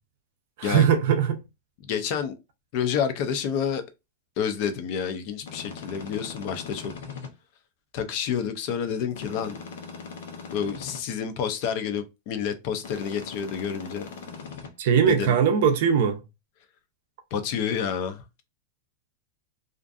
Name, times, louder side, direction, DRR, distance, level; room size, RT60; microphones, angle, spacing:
voice 1, 0.6-1.4 14.8-16.2, right 7 dB, 55° right, 0.5 m, -20 dB
voice 2, 1.8-2.3 2.7-3.8 4.4-6.9 7.9-9.6 10.5-14.1 15.1-15.4 17.3-18.2, left 7 dB, 40° left, 0.4 m, -29 dB
sound 1, 5.4-7.3 9.1-11.0 12.8-14.7, left 5 dB, 90° left, 0.6 m, -40 dB
2.5 x 2.4 x 2.3 m
supercardioid pair, 170°, 0 cm